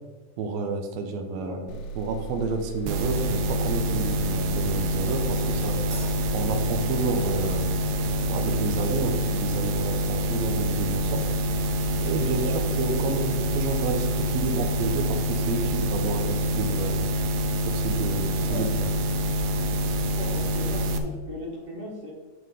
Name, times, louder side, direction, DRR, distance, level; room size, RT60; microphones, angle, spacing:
voice 1, 0.4-5.8 6.3-7.7 8.2-11.2 12.0-17.1 17.6-18.9, right 3 dB, 70° right, 5 dB, 1.9 m, -30 dB
sound 1, 1.7-9.2, right 6 dB, 80° left, 2.1 m, -41 dB
sound 2, 2.9-21.0, equal, 90° right, 1.4 m, -26 dB
Crash cymbal, 5.9-7.6, right 2 dB, 50° right, 3.3 m, -45 dB
voice 2, 20.1-22.1, equal, 25° right, -3 dB, 1.2 m, -37 dB
9.4 x 6.1 x 3.6 m, 1.3 s
omnidirectional pair, 3.7 m